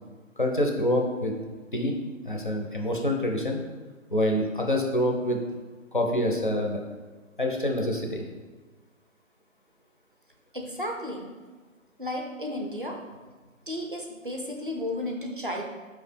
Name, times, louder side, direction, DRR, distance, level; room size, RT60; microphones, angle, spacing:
voice 1, 0.4-1.3 1.7-1.9 2.2-3.6 4.1-5.4 5.9-6.8 7.4-8.2, left 1 dB, 40° left, 1 dB, 0.4 m, -26 dB
voice 2, 10.5-11.2 12.0-13.0 13.7-15.6, left 1 dB, 40° right, 1 dB, 0.5 m, -33 dB
4.7 x 2.9 x 3.2 m, 1.3 s
hypercardioid pair, 175°, 40 cm